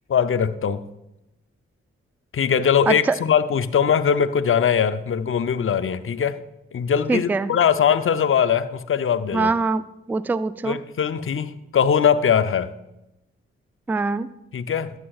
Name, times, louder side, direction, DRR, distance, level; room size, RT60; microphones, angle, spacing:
voice 1, 0.1-0.8 2.3-6.4 6.7-9.5 10.6-12.7 14.5-14.9, left 7 dB, 45° left, 12 dB, 0.6 m, -21 dB
voice 2, 7.1-7.5 9.3-9.8 10.1-10.8 13.9-14.3, right 3 dB, 5° right, 15 dB, 0.3 m, -23 dB
11.0 x 8.7 x 2.3 m, 0.90 s
supercardioid pair, 45°, 29 cm